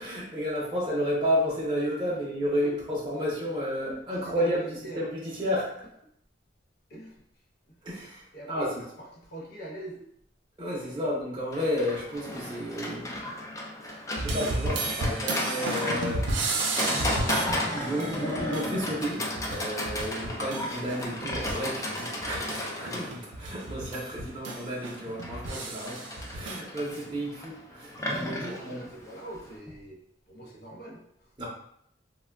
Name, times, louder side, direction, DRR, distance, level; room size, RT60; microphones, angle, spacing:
voice 1, 0.0-5.7 7.8-8.7 10.6-13.3 13.8-16.2 17.7-28.8 31.4-31.5, equal, 25° right, -6 dB, 0.6 m, -32 dB
voice 2, 3.9-4.5 4.8-5.0 6.9-7.2 8.3-10.1 10.6-11.1 28.4-30.0 30.3-31.3, right 1 dB, 55° left, -2 dB, 0.7 m, -43 dB
Livestock farm animals working animals, 11.5-29.6, left 1 dB, 15° left, 0.4 m, -34 dB
sound 1, 14.2-21.7 22.0-26.6, right 2 dB, 80° right, 0.5 m, -33 dB
3.4 x 2.2 x 2.2 m, 0.71 s
head